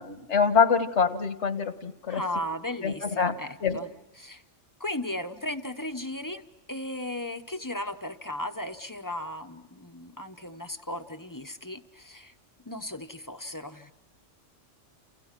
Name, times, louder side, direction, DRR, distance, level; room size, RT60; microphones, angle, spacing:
voice 1, 0.0-2.2 2.8-3.3 3.6-3.8, left 6 dB, 70° left, 9 dB, 1.7 m, -25 dB
voice 2, 2.1-3.9 4.2-4.4 4.8-6.4 6.7-12.3 12.7-13.9, left 1 dB, 20° left, 8 dB, 0.9 m, -36 dB
29.5 x 28.5 x 5.9 m, 0.91 s
omnidirectional pair, 1.2 m